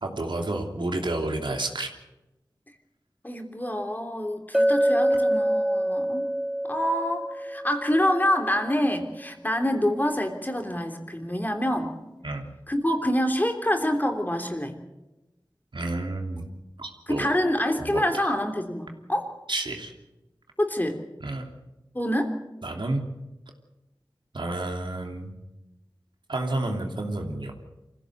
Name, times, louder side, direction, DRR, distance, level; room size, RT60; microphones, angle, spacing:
voice 1, 0.0-1.9 12.2-12.5 15.7-16.5 16.8-17.3 17.8-18.3 19.5-19.9 21.2-21.5 22.6-23.0 24.3-25.3 26.3-27.5, right 2 dB, 70° right, 3 dB, 3.0 m, -30 dB
voice 2, 3.2-6.3 6.7-11.9 12.7-14.8 17.1-19.3 20.6-21.0 21.9-22.3, equal, 20° left, 4 dB, 3.3 m, -26 dB
Chink clink, 4.5-8.6, equal, 5° right, 0.7 m, -25 dB
25.0 x 16.0 x 8.0 m, 0.99 s
wide cardioid pair, 50°, 8 cm